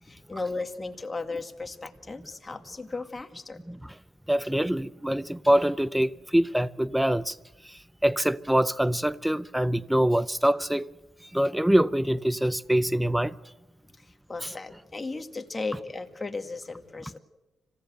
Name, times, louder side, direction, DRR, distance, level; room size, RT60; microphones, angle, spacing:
voice 1, 0.0-3.6 14.0-17.2, left 3 dB, 20° left, 2.0 m, -36 dB
voice 2, 4.3-7.4 7.7-10.9 11.3-13.3, right 1 dB, 5° right, 0.7 m, -24 dB
26.5 x 17.0 x 7.9 m
cardioid pair, 90°, 0 cm